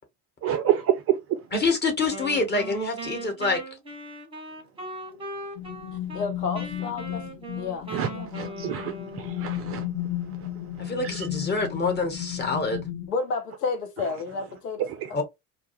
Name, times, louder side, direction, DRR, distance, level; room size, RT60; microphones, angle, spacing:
voice 1, 0.4-1.4 7.9-8.1 8.3-9.8 11.0-11.3, right 11 dB, 30° right, 0.4 m, -27 dB
voice 2, 1.5-3.6 10.8-12.9 15.1-15.2, left 3 dB, 20° left, 1.1 m, -26 dB
Wind instrument woodwind instrument, 2.1-6.3 6.5-9.5, right 1 dB, 10° right, 0.9 m, -39 dB
sound 1, 5.6-13.1, left 13 dB, 40° left, 0.6 m, -34 dB
voice 3, 6.1-7.2 7.5-8.3 13.1-15.2, left 4 dB, 75° left, 0.7 m, -31 dB
2.5 x 2.2 x 2.9 m
figure-of-eight pair, 60°, 48 cm